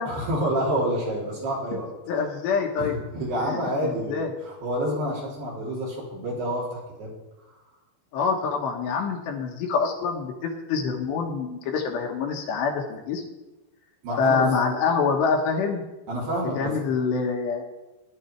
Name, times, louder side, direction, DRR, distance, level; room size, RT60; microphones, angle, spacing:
voice 1, 0.1-1.9 2.8-7.1 14.0-14.4 16.1-16.8, equal, 60° right, -6 dB, 5.2 m, -28 dB
voice 2, 2.1-3.0 3.5-4.3 8.1-13.2 14.2-15.9 16.6-17.6, left 5 dB, 70° left, 2 dB, 3.4 m, -26 dB
17.5 x 11.0 x 4.6 m, 1.1 s
omnidirectional pair, 5.4 m